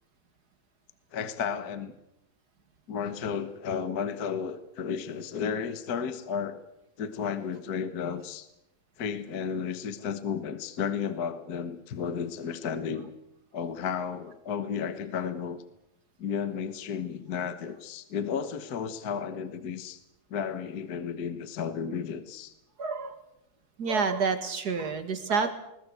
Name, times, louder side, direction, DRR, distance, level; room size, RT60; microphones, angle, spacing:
voice 1, 1.1-1.9 2.9-6.6 7.0-8.5 9.0-13.1 13.5-15.6 16.2-20.0 20.3-22.5, left 7 dB, 50° left, 11 dB, 1.6 m, -33 dB
voice 2, 22.8-23.2 23.8-25.5, right 5 dB, 50° right, 9 dB, 2.3 m, -28 dB
21.0 x 19.5 x 8.0 m, 0.86 s
omnidirectional pair, 2.3 m